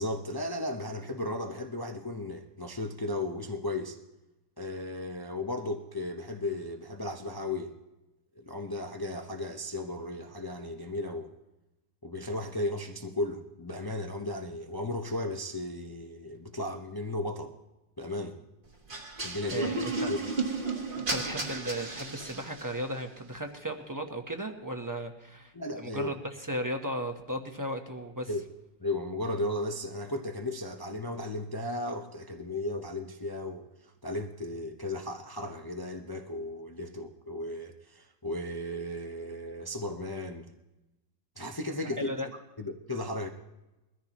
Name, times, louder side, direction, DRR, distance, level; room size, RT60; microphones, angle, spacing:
voice 1, 0.0-4.0 4.6-7.7 8.4-11.3 12.0-17.5 18.0-18.4 19.2-19.7 20.1-20.2 25.5-26.1 28.3-28.4 28.8-33.6 34.0-40.5 41.4-42.1 42.6-43.3, left 1 dB, 35° left, 4 dB, 0.3 m, -35 dB
sound 1, 18.9-22.8, right 3 dB, 30° right, 1.3 m, -33 dB
voice 2, 19.5-20.1 20.9-28.3 41.8-42.3, equal, 15° right, 4 dB, 0.7 m, -36 dB
22.0 x 14.0 x 3.0 m, 0.99 s
omnidirectional pair, 1.9 m